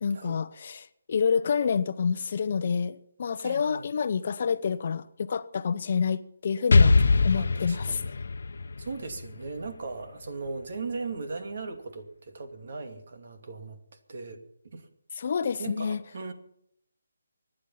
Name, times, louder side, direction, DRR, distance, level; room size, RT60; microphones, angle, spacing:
voice 1, 0.0-8.0 15.2-16.0, left 6 dB, 45° left, 0.9 m, -28 dB
voice 2, 3.4-3.8 7.0-8.1 8.8-13.8 14.1-14.9 15.6-16.3, right 4 dB, 55° right, 2.5 m, -38 dB
Explosion, 6.7-10.5, left 3 dB, 65° left, 1.1 m, -23 dB
24.5 x 10.0 x 5.7 m
figure-of-eight pair, 160°, 0 cm